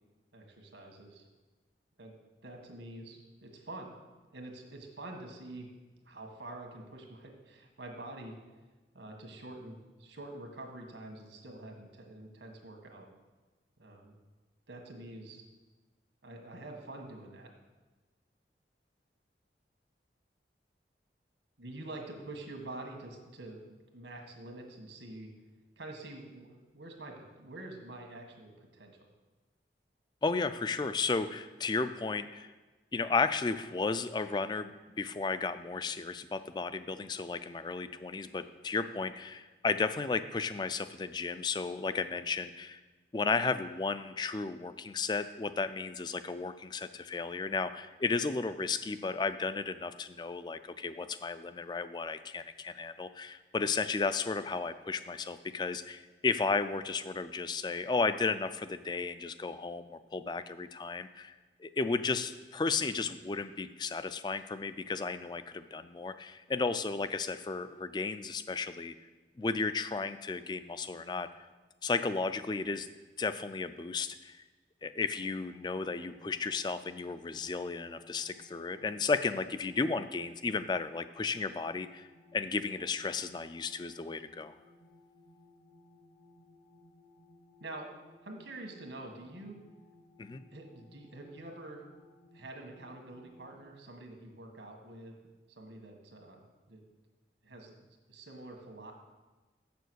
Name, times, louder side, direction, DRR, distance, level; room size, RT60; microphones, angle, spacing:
voice 1, 0.3-1.2 2.0-2.1 2.4-3.9 4.3-5.7 6.0-8.3 8.9-13.0 13.8-14.2 14.7-15.4 16.2-17.5 21.6-23.6 23.9-25.3 25.8-29.1 87.6-87.9 88.2-89.6 90.5-91.8 92.3-95.1 95.6-96.4 96.7-96.8 97.4-97.8 98.1-98.9, right 2 dB, 85° right, 2 dB, 1.6 m, -46 dB
voice 2, 30.2-32.5 32.9-42.8 43.1-61.3 61.6-68.9 69.4-71.3 71.8-72.9 73.2-74.4 74.8-84.5 90.2-90.4, left 4 dB, 25° left, 12 dB, 0.3 m, -34 dB
sound 1, 75.1-93.7, left 2 dB, 80° left, 1.2 m, -61 dB
7.3 x 6.9 x 6.3 m, 1.2 s
head